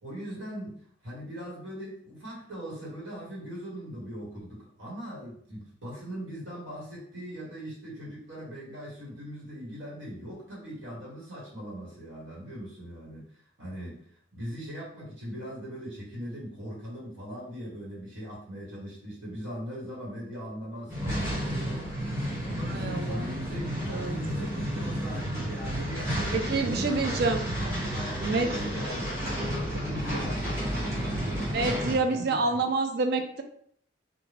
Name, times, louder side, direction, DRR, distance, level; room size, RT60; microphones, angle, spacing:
voice 1, 0.0-13.2 13.6-27.2 27.6-32.6, equal, 80° right, -5 dB, 1.3 m, -40 dB
sound 1, 20.9-31.9, equal, 15° right, 1.5 m, -31 dB
voice 2, 22.7-23.3 23.9-24.1 26.3-27.4 28.2-28.5 31.5-33.4, right 3 dB, 55° right, 6 dB, 0.4 m, -27 dB
2.7 x 2.1 x 3.2 m, 0.62 s
head